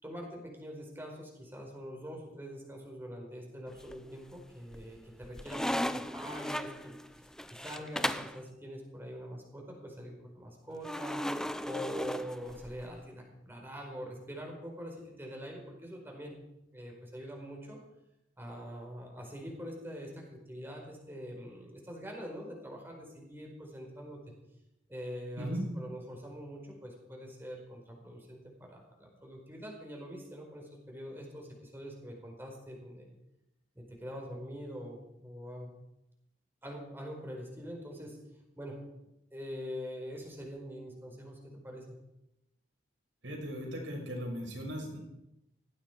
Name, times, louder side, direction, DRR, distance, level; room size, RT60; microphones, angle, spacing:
voice 1, 0.0-5.8 6.1-7.0 7.2-11.3 11.6-16.3 16.7-17.8 18.4-24.2 24.9-33.1 33.7-35.7 36.6-38.2 38.6-38.8 39.3-41.8, equal, 10° right, 0 dB, 4.7 m, -44 dB
sound 1, 3.7-4.3 4.7-8.4 10.8-12.9, left 1 dB, 5° left, 0.6 m, -36 dB
voice 2, 43.2-45.0, equal, 85° right, 0 dB, 6.4 m, -37 dB
19.0 x 15.0 x 4.6 m, 0.89 s
head